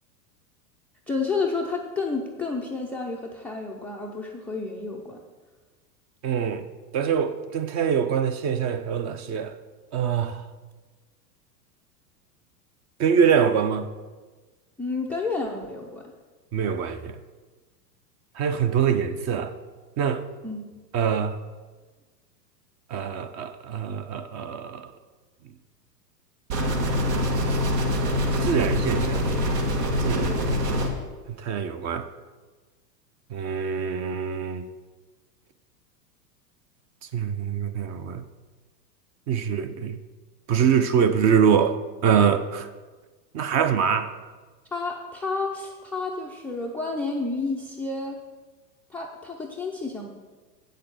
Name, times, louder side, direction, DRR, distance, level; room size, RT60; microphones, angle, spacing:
voice 1, 1.1-5.2 14.8-16.0 20.4-20.6 30.2-30.5 44.7-48.2 48.9-50.1, left 3 dB, 5° left, 0.4 m, -30 dB
voice 2, 6.2-6.7 6.9-9.6 9.9-10.5 13.0-13.9 16.5-17.2 18.3-19.5 20.0-20.2 20.9-21.4 22.9-24.9 27.5-27.6 28.4-29.3 30.0-30.4 31.3-32.1 33.3-34.6 37.1-38.2 39.3-40.0 40.5-42.7 43.3-44.1, right 7 dB, 35° right, 0.8 m, -24 dB
sound 1, 26.5-30.9, equal, 70° right, 2.2 m, -24 dB
8.1 x 6.6 x 7.8 m
hypercardioid pair, 120°, 50 cm